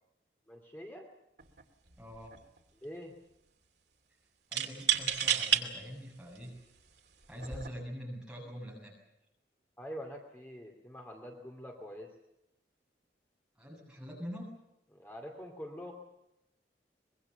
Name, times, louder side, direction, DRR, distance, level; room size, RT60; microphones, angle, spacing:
voice 1, 0.5-1.1 2.8-3.1 7.4-7.6 9.8-12.2 14.9-15.9, equal, 10° left, 2 dB, 2.5 m, -45 dB
sound 1, 1.4-1.6 1.9-2.6 4.5-5.6 6.4-6.5 7.4-7.7, right 9 dB, 70° right, 2.7 m, -30 dB
voice 2, 2.0-2.4 4.5-6.6 7.3-8.9 13.6-14.5, equal, 5° right, -2 dB, 7.3 m, -44 dB
24.5 x 22.5 x 7.0 m, 0.85 s
head